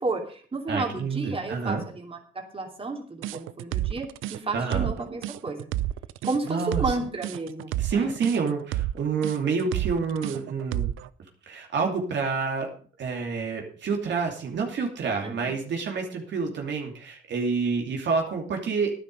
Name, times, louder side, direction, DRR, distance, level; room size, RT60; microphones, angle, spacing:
voice 1, 0.0-2.2 2.5-5.7 6.2-8.1 15.2-15.5, right 3 dB, 30° right, 2 dB, 3.0 m, -32 dB
voice 2, 0.7-1.8 4.5-4.9 6.5-6.8 7.8-10.9 11.5-12.7 13.0-18.9, right 5 dB, 65° right, 2 dB, 2.7 m, -28 dB
sound 1, 3.2-11.1, right 14 dB, 90° right, 0.5 m, -30 dB
11.5 x 10.5 x 5.4 m, 0.43 s
cardioid pair, 90°, 20 cm